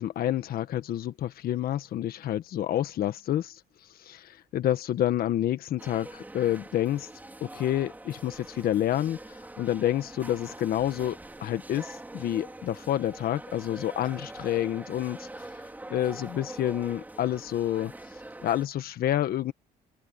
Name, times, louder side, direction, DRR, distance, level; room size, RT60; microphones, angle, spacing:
voice 1, 0.0-3.6 4.0-7.1 7.4-9.2 9.6-15.5 15.9-17.9 18.4-19.5, left 12 dB, 60° left, 1.4 m, -28 dB
sound 1, 5.8-18.7, right 2 dB, 10° right, 4.9 m, -44 dB
open air
cardioid pair, 110°, 17 cm